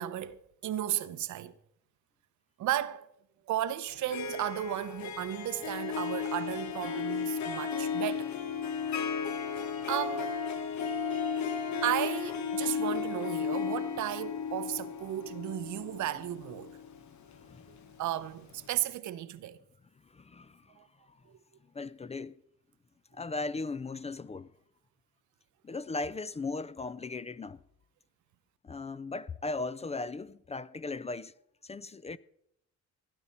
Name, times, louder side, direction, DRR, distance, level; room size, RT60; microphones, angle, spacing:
voice 1, 0.0-1.5 2.6-3.1 3.5-8.3 9.5-10.3 11.8-16.8 18.0-19.6, right 12 dB, 75° right, 0.8 m, -34 dB
Harp, 3.9-17.9, left 6 dB, 70° left, 1.3 m, -34 dB
voice 2, 10.6-11.6 17.4-17.7 20.0-20.8 21.1-21.2 21.7-22.4 23.1-24.5 25.6-27.6 28.6-31.3 31.6-32.2, left 3 dB, 20° left, 0.4 m, -38 dB
16.0 x 9.9 x 4.3 m
cardioid pair, 90°, 30 cm